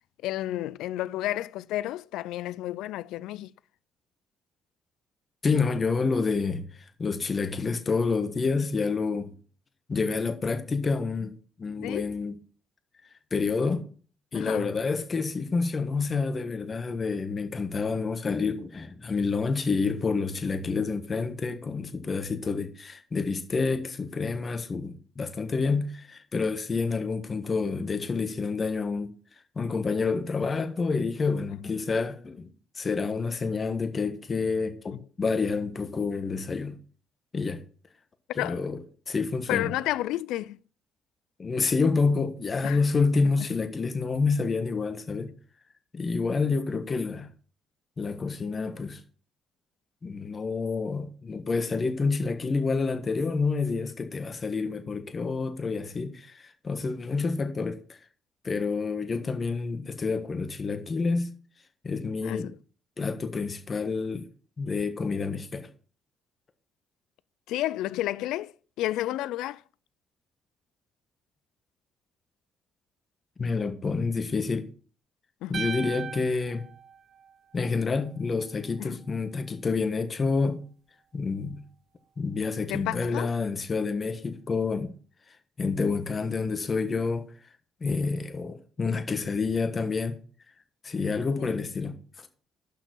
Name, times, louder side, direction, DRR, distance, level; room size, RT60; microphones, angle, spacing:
voice 1, 0.2-3.5 11.8-12.2 14.3-14.7 31.5-31.6 38.3-38.6 39.5-40.6 42.6-42.8 62.2-62.6 67.5-69.6 75.4-75.6 78.8-79.0 82.7-83.3 91.4-91.6, left 15 dB, 80° left, 0.3 m, -31 dB
voice 2, 5.4-9.3 9.9-12.3 13.3-13.9 14.3-29.1 29.5-32.5 32.8-36.8 37.3-37.6 38.3-38.8 39.1-39.7 41.4-45.3 45.9-47.3 48.0-49.0 50.0-58.0 58.4-61.3 61.8-62.5 63.0-64.3 64.6-65.7 73.4-74.7 75.5-76.7 77.5-80.6 81.1-81.6 82.2-84.9 85.6-87.3 87.8-90.2 90.8-92.3, left 4 dB, 40° left, 1.3 m, -28 dB
sound 1, 75.5-77.8, right 6 dB, 50° right, 0.7 m, -38 dB
6.9 x 5.9 x 6.1 m
supercardioid pair, 60°, 0 cm